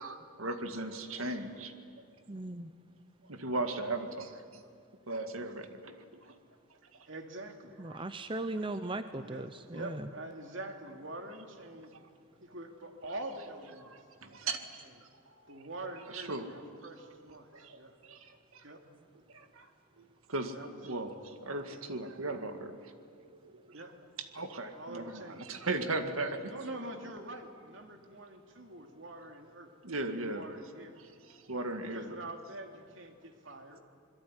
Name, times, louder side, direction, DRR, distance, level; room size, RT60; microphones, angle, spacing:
voice 1, 0.0-1.7 3.2-4.6 5.1-6.4 6.9-7.1 7.9-8.1 8.5-8.7 11.8-12.0 13.9-14.9 15.5-15.6 16.1-16.6 16.9-18.6 19.3-19.7 20.0-22.9 23.2-23.9 24.2-26.5 29.8-30.4 31.0-32.1, right 2 dB, 80° right, 7 dB, 2.0 m, -38 dB
voice 2, 2.3-2.7 7.8-10.1, right 2 dB, 25° right, 10 dB, 0.7 m, -38 dB
voice 3, 7.1-7.7 9.2-11.9 12.4-13.9 14.4-14.6 15.5-17.5 17.7-17.9 18.6-18.8 20.5-21.0 23.7-23.9 24.7-25.4 26.5-29.7 30.1-31.0 31.9-33.8, right 2 dB, 65° right, 4 dB, 2.8 m, -45 dB
27.0 x 22.0 x 9.9 m, 2.2 s
head